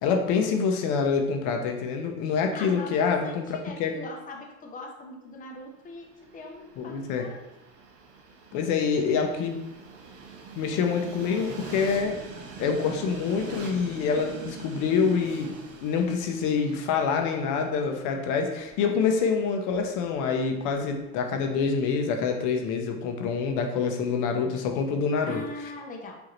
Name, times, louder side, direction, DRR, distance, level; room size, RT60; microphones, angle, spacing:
voice 1, 0.0-4.0 6.8-7.3 8.5-9.6 10.5-12.2 12.6-15.5 15.8-25.4, left 5 dB, 65° left, 4 dB, 0.8 m, -26 dB
voice 2, 2.5-7.5 25.2-26.2, left 2 dB, 25° left, 1 dB, 0.7 m, -41 dB
Train, 5.8-21.8, right 4 dB, 45° right, 0.8 m, -44 dB
4.9 x 2.8 x 3.1 m, 0.94 s
supercardioid pair, 115°, 33 cm